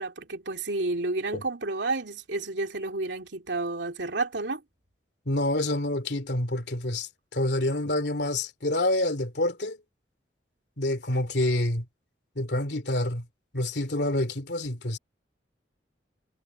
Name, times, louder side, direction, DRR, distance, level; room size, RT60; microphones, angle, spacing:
voice 1, 0.0-4.6, right 2 dB, 75° right, 2.8 m, -30 dB
voice 2, 5.3-9.8 10.8-11.9 12.3-13.3 13.5-15.0, left 1 dB, 65° left, 2.8 m, -27 dB
head